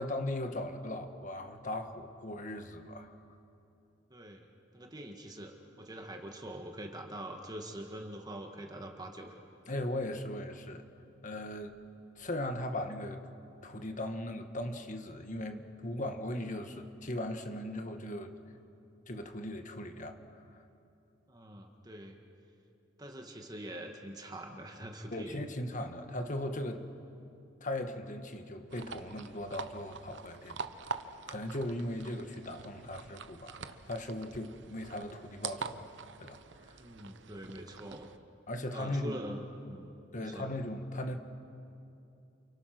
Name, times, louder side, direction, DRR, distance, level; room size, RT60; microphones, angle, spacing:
voice 1, 0.0-3.1 9.7-10.8 11.2-11.8 12.2-13.2 13.6-18.4 19.1-20.6 25.1-26.9 27.6-30.6 30.8-31.0 31.3-35.9 36.2-36.8 38.5-39.2 40.1-41.2, left 1 dB, 45° left, 6 dB, 1.6 m, -38 dB
voice 2, 4.1-9.5 21.3-22.2 23.0-25.4 36.8-38.1 38.7-40.5, right 1 dB, 20° right, 2 dB, 1.9 m, -44 dB
sound 1, 28.7-38.2, right 5 dB, 70° right, 0.9 m, -45 dB
29.0 x 28.5 x 6.1 m, 2.7 s
head